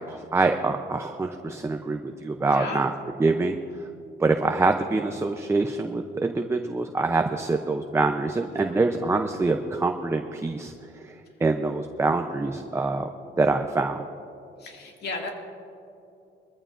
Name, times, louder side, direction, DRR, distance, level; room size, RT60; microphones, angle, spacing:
voice 1, 0.1-2.9 3.2-3.6 4.2-10.7 11.0-13.1 13.4-14.0, right 3 dB, 15° right, 5 dB, 0.6 m, -25 dB
voice 2, 2.4-2.9 8.5-8.8 14.6-15.3, left 3 dB, 60° left, 1 dB, 2.2 m, -35 dB
23.0 x 14.5 x 2.5 m, 2.7 s
cardioid pair, 130°, 19 cm